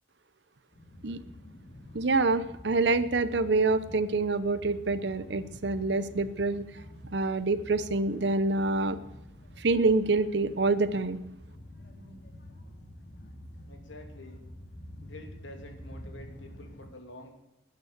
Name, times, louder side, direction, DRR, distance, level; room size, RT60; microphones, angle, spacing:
sound 1, 0.7-16.9, left 1 dB, 60° left, 2.4 m, -48 dB
voice 1, 1.9-6.7 7.1-9.0 9.6-11.2, right 3 dB, 65° right, 13 dB, 0.8 m, -26 dB
voice 2, 13.7-14.4 15.0-17.4, left 1 dB, 85° left, 4 dB, 2.8 m, -48 dB
13.0 x 9.2 x 8.1 m, 0.92 s
head